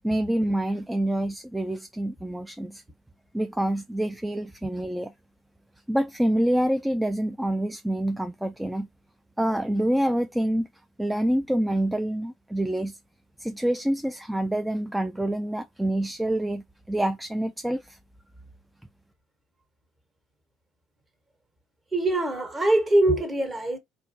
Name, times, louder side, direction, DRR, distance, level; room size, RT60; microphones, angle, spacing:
voice 1, 0.0-2.8 3.3-5.1 5.9-8.9 9.4-10.7 11.0-13.0 13.4-18.0, right 1 dB, 5° right, 0.3 m, -26 dB
voice 2, 21.9-23.8, right 1 dB, 20° right, 1.3 m, -23 dB
4.4 x 2.6 x 2.7 m
figure-of-eight pair, 55°, 0 cm